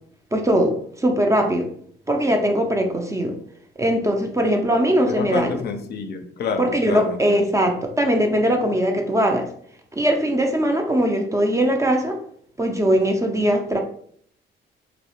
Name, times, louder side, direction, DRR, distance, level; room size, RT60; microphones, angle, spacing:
voice 1, 0.3-1.7 2.1-3.3 3.8-5.6 6.6-9.5 9.9-12.2 12.6-13.8, equal, 15° right, 3 dB, 0.3 m, -20 dB
voice 2, 5.1-7.5, left 5 dB, 55° left, 5 dB, 0.4 m, -28 dB
2.4 x 2.0 x 2.8 m, 0.63 s
cardioid pair, 90°, 20 cm